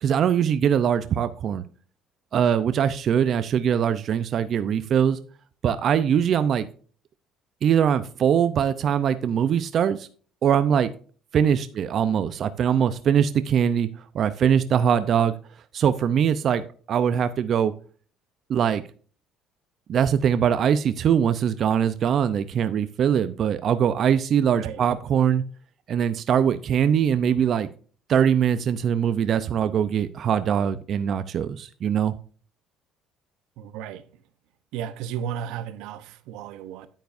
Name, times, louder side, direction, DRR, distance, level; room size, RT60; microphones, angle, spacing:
voice 1, 0.0-1.6 2.3-5.2 5.6-6.7 7.6-10.1 10.4-10.9 11.3-13.9 14.1-15.3 15.7-16.6 16.9-17.7 18.5-18.8 19.9-25.4 25.9-27.7 28.1-32.1, right 8 dB, 50° right, 0.6 m, -22 dB
voice 2, 33.6-34.2 34.7-36.9, right 9 dB, 80° right, 0.9 m, -34 dB
9.4 x 9.1 x 2.6 m
cardioid pair, 110°, 0 cm